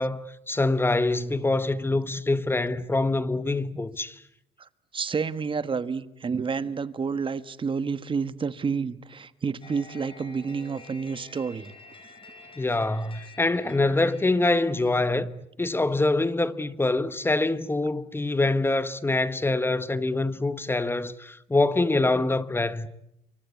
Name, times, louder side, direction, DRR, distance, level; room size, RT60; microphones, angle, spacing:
voice 1, 0.0-4.2 12.6-22.9, left 2 dB, 15° left, 1.2 m, -25 dB
voice 2, 4.6-11.7, right 5 dB, 30° right, 1.4 m, -30 dB
sound 1, 9.6-15.0, left 3 dB, 30° left, 5.7 m, -49 dB
28.5 x 24.5 x 8.5 m
cardioid pair, 110°, 17 cm